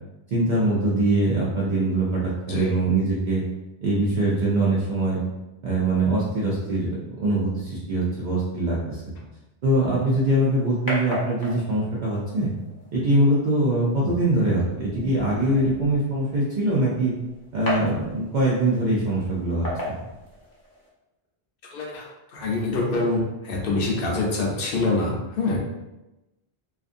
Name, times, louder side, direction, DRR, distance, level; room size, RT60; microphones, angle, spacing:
voice 1, 0.3-2.2 2.5-3.4 3.8-5.2 5.6-9.0 9.6-12.5 12.9-17.1 17.5-20.0, right 1 dB, 55° right, -7 dB, 0.6 m, -23 dB
sound 1, 9.9-20.9, equal, 25° left, 0.6 m, -37 dB
voice 2, 21.7-25.6, left 2 dB, 65° left, -2 dB, 0.8 m, -25 dB
2.5 x 2.5 x 2.5 m, 1.0 s
omnidirectional pair, 1.0 m